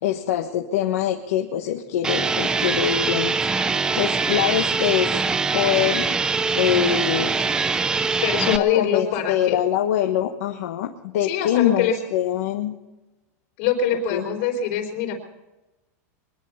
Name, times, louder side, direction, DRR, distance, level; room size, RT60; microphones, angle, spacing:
voice 1, 0.0-5.2 5.5-6.2 6.5-7.3 8.4-12.8 14.1-14.2, left 10 dB, 65° left, 3 dB, 1.3 m, -24 dB
sound 1, 2.0-8.6, right 4 dB, 10° right, 0.4 m, -23 dB
voice 2, 8.2-9.6 11.2-11.9 13.6-15.2, left 8 dB, 45° left, 1 dB, 4.1 m, -23 dB
23.5 x 10.5 x 5.6 m, 1.0 s
supercardioid pair, 165°, 9 cm